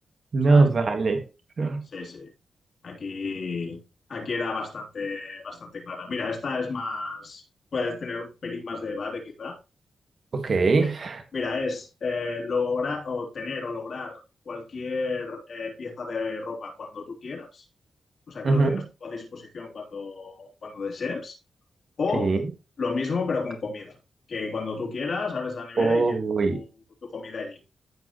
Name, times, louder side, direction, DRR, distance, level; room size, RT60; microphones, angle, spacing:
voice 1, 0.3-1.2 1.6-1.9 10.3-11.2 18.4-18.8 22.1-22.4 25.8-26.6, right 3 dB, 50° right, 1.7 m, -21 dB
voice 2, 1.9-2.3 2.8-3.8 4.1-7.4 7.7-9.6 10.8-10.9 11.3-14.2 14.4-17.6 18.3-21.4 22.0-22.4 22.8-24.0 24.3-26.1 26.5-26.7 27.0-27.6, left 4 dB, 60° left, 3.3 m, -32 dB
15.0 x 5.0 x 3.1 m
cardioid pair, 90°, 0 cm